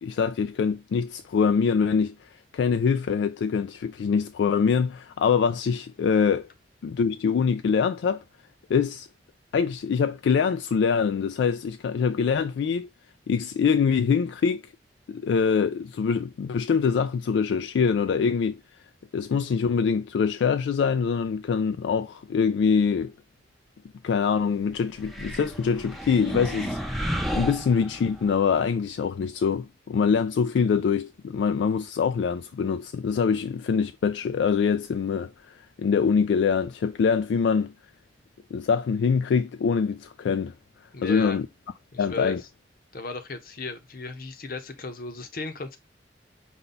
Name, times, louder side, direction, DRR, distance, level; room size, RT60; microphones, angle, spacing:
voice 1, 0.0-2.1 2.5-6.5 6.8-8.2 8.7-9.1 9.5-12.9 13.3-14.6 15.1-18.6 19.1-23.1 24.0-37.7 38.5-40.5 41.0-41.5 42.0-42.4, left 6 dB, 80° left, 0.3 m, -24 dB
sound 1, 25.0-28.3, equal, ahead, 0.5 m, -32 dB
voice 2, 40.9-41.4 41.9-42.5 42.9-45.8, left 3 dB, 55° left, 0.8 m, -35 dB
5.3 x 2.3 x 3.9 m
head